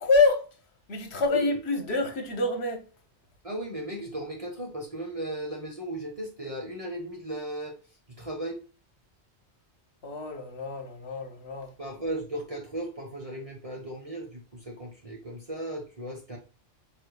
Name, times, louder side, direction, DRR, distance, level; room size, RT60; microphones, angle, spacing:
voice 1, 0.0-0.5 0.9-2.8 10.0-11.7, left 3 dB, 70° left, 1.3 m, -26 dB
voice 2, 1.3-1.6 3.4-7.7 8.1-8.6 11.8-16.4, right 1 dB, 30° right, 1.3 m, -36 dB
4.9 x 4.6 x 2.3 m
omnidirectional pair, 1.1 m